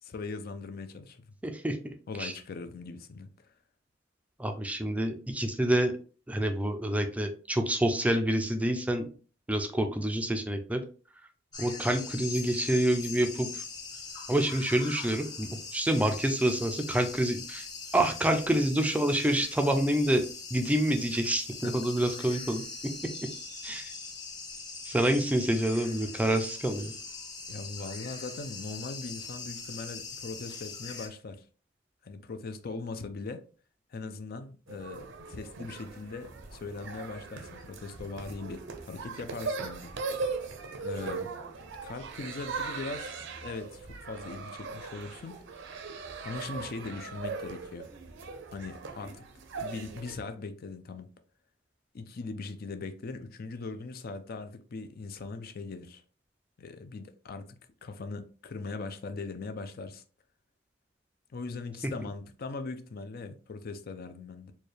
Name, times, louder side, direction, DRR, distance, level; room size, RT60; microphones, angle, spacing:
voice 1, 0.0-1.3 2.1-3.5 21.6-21.7 27.5-31.4 32.0-33.4 33.9-39.9 40.8-41.3 41.8-45.4 46.2-47.9 48.5-49.2 49.6-51.1 51.9-56.0 56.6-60.0 61.3-64.5, left 3 dB, 50° left, 0.4 m, -40 dB
voice 2, 1.4-1.8 2.2-2.3 4.4-5.9 6.3-9.0 9.5-10.8 11.6-13.6 14.3-17.7 17.9-20.2 20.5-22.6 23.6-23.9 24.9-26.9, right 1 dB, 5° right, 0.4 m, -27 dB
sound 1, 11.5-31.1, left 4 dB, 20° left, 0.8 m, -42 dB
sound 2, 34.7-50.1, right 4 dB, 65° right, 0.6 m, -39 dB
4.4 x 2.3 x 3.2 m
head